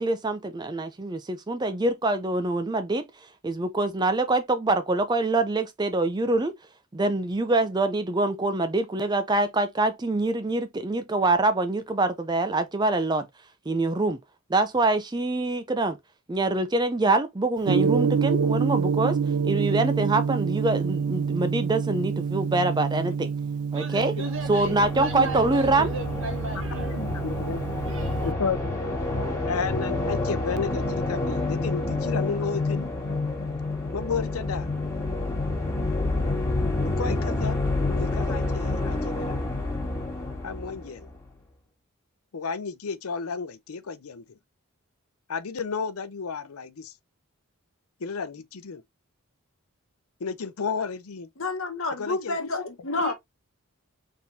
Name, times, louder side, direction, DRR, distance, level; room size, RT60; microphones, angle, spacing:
voice 1, 0.0-3.0 3.4-6.5 6.9-13.3 13.7-14.2 14.5-16.0 16.3-19.2 19.4-23.3 23.7-24.1 24.5-25.9, right 2 dB, 20° right, 0.4 m, -25 dB
Gong, 17.7-28.3, right 6 dB, 85° right, 0.4 m, -27 dB
voice 2, 23.7-27.0 27.8-28.3 52.9-53.1, right 2 dB, 60° right, 1.6 m, -36 dB
sound 1, 24.2-41.3, left 2 dB, 15° left, 1.7 m, -28 dB
voice 3, 26.5-27.6 28.2-28.6 29.5-32.9 33.9-34.7 37.0-39.4 40.4-41.1 42.3-44.4 45.3-46.9 48.0-48.8 50.2-51.3 52.0-52.4, left 5 dB, 80° left, 0.6 m, -32 dB
voice 4, 51.4-53.1, left 3 dB, 65° left, 1.2 m, -29 dB
4.2 x 3.7 x 2.6 m
head